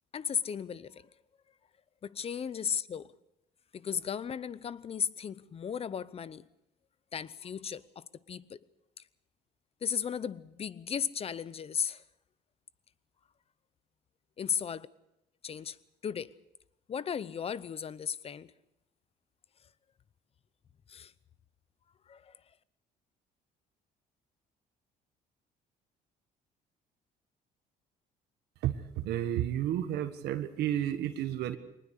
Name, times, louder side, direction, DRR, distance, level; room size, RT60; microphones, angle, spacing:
voice 1, 0.1-1.1 2.0-3.1 3.7-6.5 7.1-8.6 9.8-12.0 14.4-14.9 15.4-15.8 16.0-16.4 16.9-18.5 20.9-21.1 22.1-22.4, left 7 dB, 35° left, 0.8 m, -35 dB
voice 2, 28.6-31.6, right 11 dB, 75° right, 1.5 m, -31 dB
23.0 x 19.5 x 6.6 m
cardioid pair, 110°, 17 cm